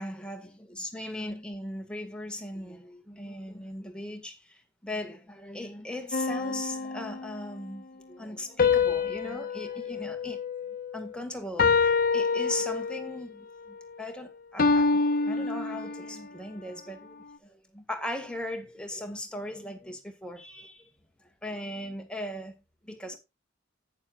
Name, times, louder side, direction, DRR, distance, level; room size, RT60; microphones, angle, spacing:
voice 1, 0.0-4.4 4.8-10.4 10.9-14.9 15.2-20.9 21.4-22.5 22.9-23.2, left 1 dB, 5° left, 1.8 m, -38 dB
sound 1, 6.1-7.6 8.6-11.1 11.6-13.2 14.6-16.3, left 4 dB, 45° left, 1.0 m, -27 dB
11.5 x 9.5 x 2.4 m
head